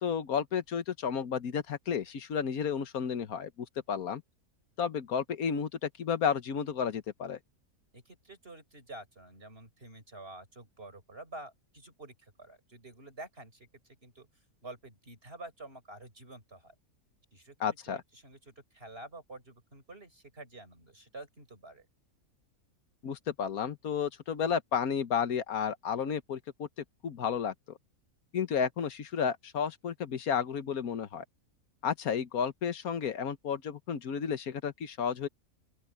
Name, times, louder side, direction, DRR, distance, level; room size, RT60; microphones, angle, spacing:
voice 1, 0.0-4.2 4.8-7.4 17.6-18.0 23.0-26.7 27.0-27.8 28.3-31.2 31.8-35.3, left 7 dB, 70° left, 1.6 m, -32 dB
voice 2, 7.9-14.3 14.6-16.7 17.3-17.6 17.9-21.9, right 2 dB, 40° right, 6.6 m, -49 dB
open air
omnidirectional pair, 1.6 m